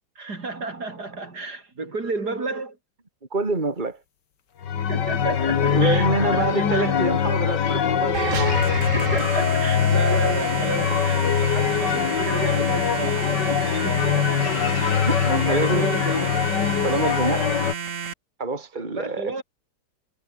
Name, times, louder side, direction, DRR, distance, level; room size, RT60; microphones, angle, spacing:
voice 1, 0.2-2.8 4.8-6.9 8.9-13.3 13.7-15.0 15.4-16.6 17.2-17.5 18.7-19.4, right 3 dB, 65° right, 4.4 m, -32 dB
voice 2, 3.3-4.0 5.7-8.7 10.9-11.0 12.5-12.6 13.2-13.6 14.9-15.9 16.8-17.5 18.4-19.4, right 3 dB, 25° right, 3.0 m, -26 dB
sound 1, 4.6-17.7, left 8 dB, 75° left, 2.1 m, -22 dB
sound 2, 8.1-18.1, right 6 dB, 50° right, 1.7 m, -31 dB
omnidirectional pair, 1.9 m